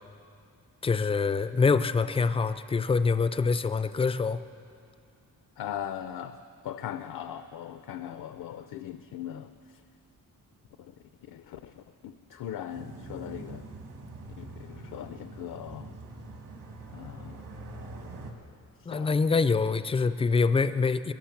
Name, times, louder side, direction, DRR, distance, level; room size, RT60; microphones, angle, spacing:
voice 1, 0.8-4.4 18.9-21.1, left 4 dB, 20° left, 13 dB, 0.3 m, -25 dB
voice 2, 5.6-6.4 6.6-9.5 10.8-10.9 11.3-13.6 14.4-15.9 16.9-17.4 18.9-19.1, left 10 dB, 75° left, 10 dB, 0.6 m, -39 dB
sound 1, 12.7-18.3, right 2 dB, 70° right, 1.8 m, -44 dB
21.0 x 11.0 x 5.9 m, 2.4 s
wide cardioid pair, 155°, 35 cm